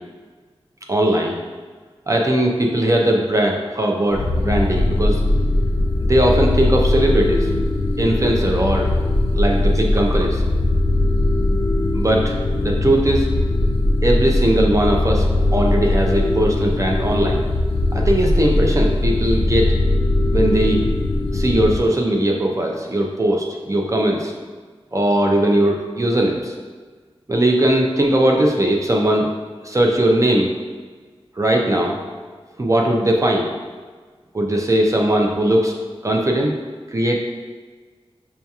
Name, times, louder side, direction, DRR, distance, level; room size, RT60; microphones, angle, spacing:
voice 1, 0.9-1.4 2.1-5.2 6.1-7.5 8.0-8.9 9.3-10.4 11.9-12.3 12.6-13.3 14.0-17.4 17.9-19.7 20.3-20.8 21.3-24.3 24.9-26.5 27.3-29.3 29.6-30.5 31.4-32.0 32.6-33.5 34.3-35.8 36.0-36.5 36.9-37.2, right 1 dB, 30° right, 0 dB, 0.4 m, -19 dB
sound 1, 4.1-21.9, left 2 dB, 70° left, 0.4 m, -20 dB
5.4 x 2.8 x 2.3 m, 1.5 s
wide cardioid pair, 80°, 10 cm